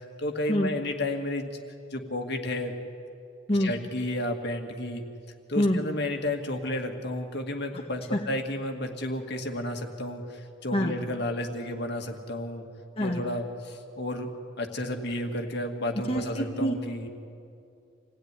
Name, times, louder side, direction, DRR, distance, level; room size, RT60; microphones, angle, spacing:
voice 1, 0.2-1.5 1.9-2.8 3.6-5.0 5.5-12.6 13.0-14.3 14.6-17.1, left 1 dB, 55° left, 3 dB, 2.1 m, -32 dB
voice 2, 16.1-16.7, equal, 30° left, -1 dB, 1.6 m, -25 dB
27.0 x 17.0 x 9.8 m, 2.6 s
head